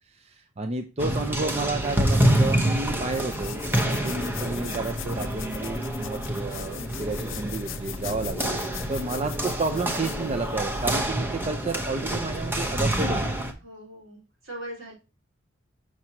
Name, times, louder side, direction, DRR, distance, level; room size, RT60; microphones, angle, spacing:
voice 1, 0.1-13.3, right 3 dB, 30° right, 6 dB, 0.5 m, -31 dB
high school gym playing badminton Montreal Canada, 1.0-13.5, right 1 dB, 10° right, 0.9 m, -27 dB
sound 1, 1.8-11.1, left 7 dB, 75° left, 0.5 m, -40 dB
voice 2, 8.9-9.2 13.6-14.9, right 1 dB, 80° right, -3 dB, 3.9 m, -41 dB
6.0 x 6.0 x 2.8 m, 0.30 s
head